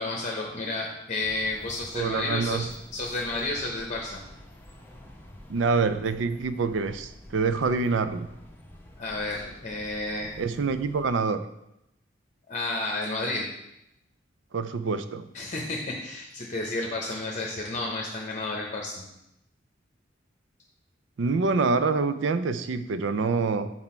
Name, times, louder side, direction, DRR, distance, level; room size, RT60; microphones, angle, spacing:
voice 1, 0.0-4.2 9.0-10.3 12.5-13.5 15.3-19.0, left 2 dB, 40° left, -1 dB, 0.8 m, -31 dB
sound 1, 1.2-11.1, left 1 dB, 10° left, 0.7 m, -48 dB
voice 2, 1.9-2.6 5.5-8.3 10.4-11.4 14.5-15.3 21.2-23.7, right 4 dB, 75° right, 11 dB, 0.4 m, -26 dB
6.0 x 4.3 x 4.4 m, 0.85 s
head